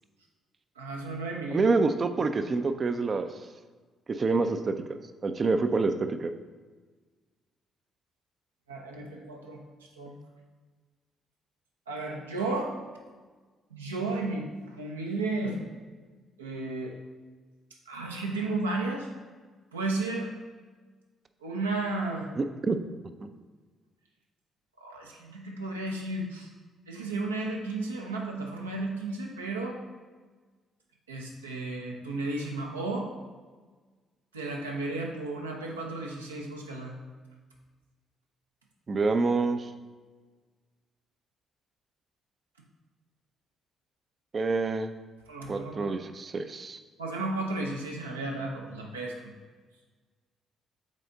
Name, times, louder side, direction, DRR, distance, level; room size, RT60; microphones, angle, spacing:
voice 1, 0.8-1.7 8.7-9.6 10.0-10.2 11.9-12.7 13.7-15.6 16.4-17.0 17.9-19.1 19.7-20.3 21.4-22.3 24.8-26.5 26.9-29.8 31.1-33.1 34.3-37.0 45.3-45.9 47.0-49.2, right 2 dB, 80° right, -1 dB, 0.7 m, -33 dB
voice 2, 1.5-3.3 4.1-4.8 5.2-6.3 22.4-22.8 23.2-23.3 38.9-39.7 44.3-44.9 45.5-46.8, right 3 dB, 35° right, 9 dB, 0.4 m, -27 dB
6.4 x 4.1 x 3.8 m, 1.4 s
figure-of-eight pair, 45°, 0 cm